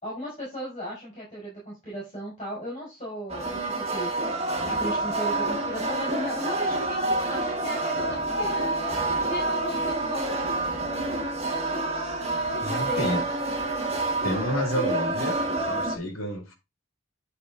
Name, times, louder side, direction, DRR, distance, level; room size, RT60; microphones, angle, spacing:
voice 1, 0.0-8.5 9.1-10.5 12.6-13.2, equal, 30° left, 4.9 m, -36 dB
sound 1, 3.3-16.0, right 2 dB, 30° right, 1.3 m, -28 dB
voice 2, 12.6-13.2 14.2-15.4 15.6-16.5, equal, 80° left, 2.0 m, -29 dB
10.5 x 4.1 x 3.8 m
head